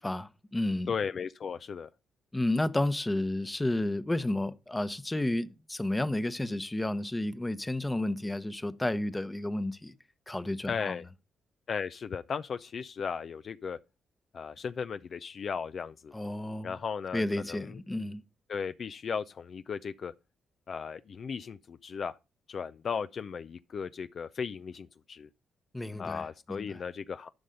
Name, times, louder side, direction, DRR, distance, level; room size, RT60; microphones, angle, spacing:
voice 1, 0.0-0.9 2.3-9.9 10.3-11.0 16.1-16.7 17.1-18.2 25.7-26.2 26.5-26.8, left 1 dB, 15° left, 0.9 m, -31 dB
voice 2, 0.9-1.9 10.7-11.0 11.7-13.8 14.3-16.1 16.6-17.8 18.5-20.1 20.7-22.1 22.5-25.3 26.0-27.3, left 6 dB, 55° left, 0.4 m, -36 dB
11.5 x 5.4 x 5.1 m
supercardioid pair, 55°, 0 cm